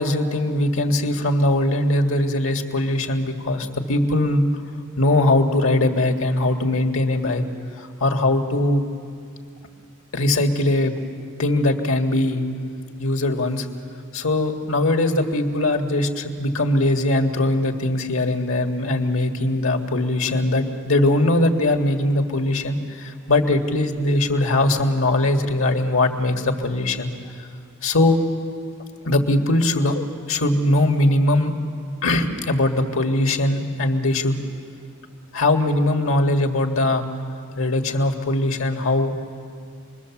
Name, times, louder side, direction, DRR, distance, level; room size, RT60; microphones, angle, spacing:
voice 1, 0.0-4.4 5.0-7.4 7.8-8.8 10.1-10.9 11.4-12.4 13.0-13.7 14.1-27.1 27.8-28.2 29.1-31.5 32.0-34.4 35.3-37.0 37.6-39.1, left 1 dB, 65° left, 5 dB, 1.9 m, -21 dB
27.0 x 21.5 x 7.2 m, 2.3 s
head